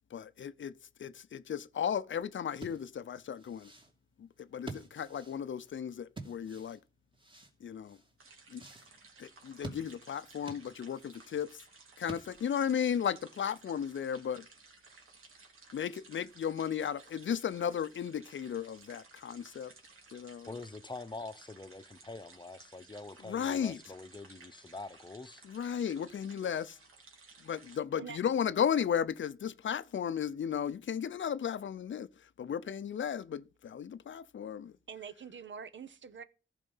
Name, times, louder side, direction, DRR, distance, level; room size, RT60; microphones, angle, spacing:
voice 1, 0.1-0.7 1.0-3.7 4.2-6.8 7.6-8.0 8.5-8.6 9.2-11.5 12.0-14.4 15.7-19.7 20.1-20.5 23.2-23.8 25.4-26.6 27.5-32.1 32.4-34.7, left 8 dB, 65° left, 0.6 m, -35 dB
sound 1, 2.6-12.6, right 3 dB, 25° right, 2.8 m, -49 dB
sound 2, 8.2-27.8, right 4 dB, 85° right, 2.8 m, -58 dB
voice 2, 20.4-25.4, left 3 dB, 20° left, 0.9 m, -45 dB
voice 3, 34.9-36.2, right 7 dB, 65° right, 0.9 m, -45 dB
14.5 x 5.0 x 5.5 m
cardioid pair, 75°, 21 cm